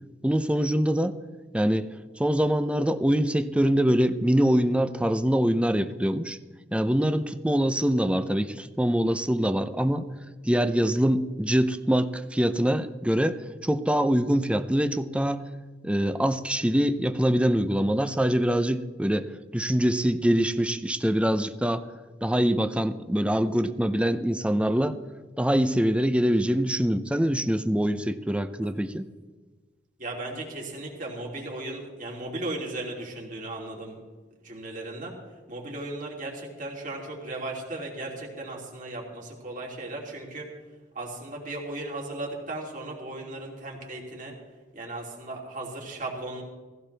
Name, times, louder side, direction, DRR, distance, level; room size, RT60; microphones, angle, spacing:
voice 1, 0.2-1.2 1.5-1.9 2.2-6.4 6.7-10.1 10.4-15.5 15.8-21.8 22.2-25.0 25.4-29.1, equal, 5° right, 11 dB, 0.6 m, -24 dB
voice 2, 30.0-34.0 34.4-35.1 35.5-40.5 40.9-44.3 44.7-46.4, right 2 dB, 45° right, -2 dB, 3.1 m, -36 dB
17.0 x 16.0 x 3.4 m, 1.3 s
head